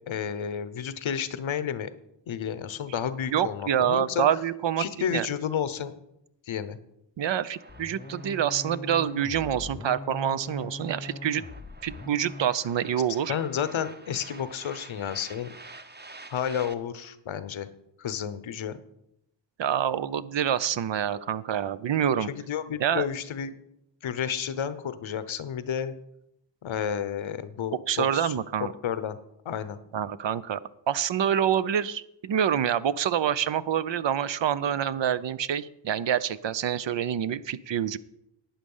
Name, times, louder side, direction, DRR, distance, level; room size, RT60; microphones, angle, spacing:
voice 1, 0.1-1.9 2.3-4.2 4.8-5.9 6.5-6.8 13.3-15.5 16.3-17.7 18.0-18.8 22.3-23.5 24.0-26.0 26.6-28.3 28.6-29.2 29.4-29.8, left 8 dB, 85° left, 13 dB, 0.9 m, -31 dB
voice 2, 3.3-4.8 5.1-5.3 7.2-11.4 11.8-13.3 19.6-22.3 22.8-23.1 27.9-28.7 29.9-30.6 30.9-38.0, right 9 dB, 70° right, 16 dB, 0.7 m, -26 dB
sound 1, 7.4-16.7, right 2 dB, 20° right, 0.9 m, -49 dB
sound 2, 7.7-12.6, left 2 dB, 20° left, 0.4 m, -41 dB
11.5 x 8.8 x 5.5 m, 0.82 s
cardioid pair, 60°, 46 cm